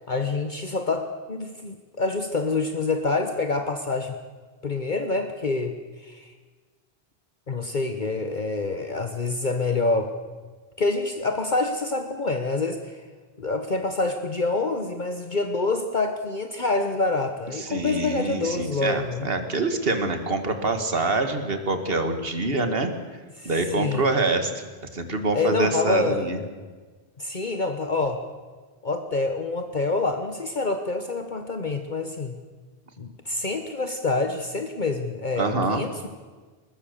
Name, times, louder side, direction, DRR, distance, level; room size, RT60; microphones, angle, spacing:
voice 1, 0.0-4.2 4.6-5.7 6.0-6.3 7.5-10.1 10.8-13.0 13.4-19.3 23.4-24.1 25.3-26.3 27.2-28.2 28.8-32.4 33.0-36.1, left 3 dB, 50° left, 6 dB, 1.4 m, -27 dB
voice 2, 17.6-22.9 23.4-24.6 24.9-26.4 35.4-35.9, right 2 dB, 65° right, 7 dB, 2.1 m, -25 dB
22.0 x 20.5 x 6.8 m, 1.4 s
omnidirectional pair, 1.0 m